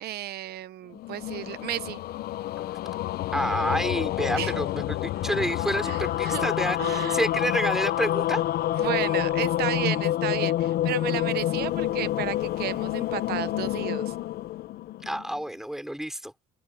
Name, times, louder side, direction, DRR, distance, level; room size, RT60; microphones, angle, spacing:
voice 1, 0.0-2.0 4.4-4.6 5.8-6.5 6.8-7.2 8.8-14.1, right 14 dB, 70° right, 0.9 m, -33 dB
sound 1, 0.9-15.4, left 13 dB, 65° left, 0.6 m, -28 dB
voice 2, 3.3-8.4 15.0-16.3, equal, ahead, 3.4 m, -29 dB
open air
cardioid pair, 110°, 17 cm